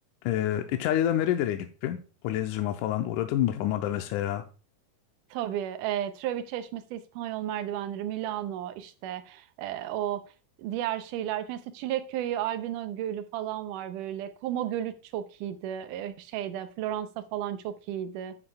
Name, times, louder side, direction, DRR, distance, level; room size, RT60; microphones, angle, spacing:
voice 1, 0.2-2.0 2.2-4.4, left 11 dB, 80° left, 6 dB, 2.0 m, -27 dB
voice 2, 5.3-10.2 10.6-18.4, right 11 dB, 85° right, 11 dB, 2.2 m, -33 dB
9.4 x 8.8 x 2.3 m, 0.35 s
omnidirectional pair, 3.8 m